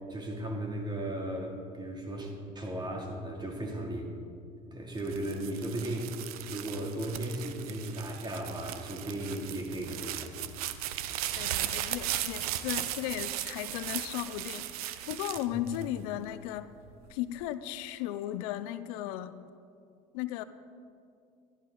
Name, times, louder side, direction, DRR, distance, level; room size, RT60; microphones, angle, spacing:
voice 1, 0.0-4.1 4.7-10.7 15.5-15.6, right 1 dB, 25° right, 0 dB, 2.6 m, -36 dB
sound 1, 5.0-16.3 16.9-17.4, right 12 dB, 90° right, 0.6 m, -37 dB
voice 2, 11.4-16.7 17.1-19.4 20.1-20.4, left 13 dB, 80° left, 13 dB, 0.5 m, -36 dB
14.5 x 11.0 x 3.8 m, 2.4 s
supercardioid pair, 90°, 18 cm